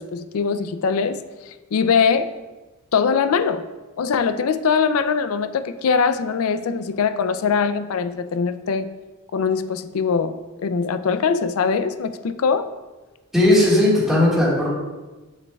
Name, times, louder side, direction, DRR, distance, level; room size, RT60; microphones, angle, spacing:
voice 1, 0.0-2.3 2.9-3.6 4.0-8.9 9.3-10.4 10.6-12.7, left 5 dB, 75° left, 12 dB, 0.4 m, -22 dB
voice 2, 13.3-14.7, left 1 dB, ahead, -8 dB, 1.7 m, -16 dB
7.4 x 6.5 x 2.3 m, 1.2 s
head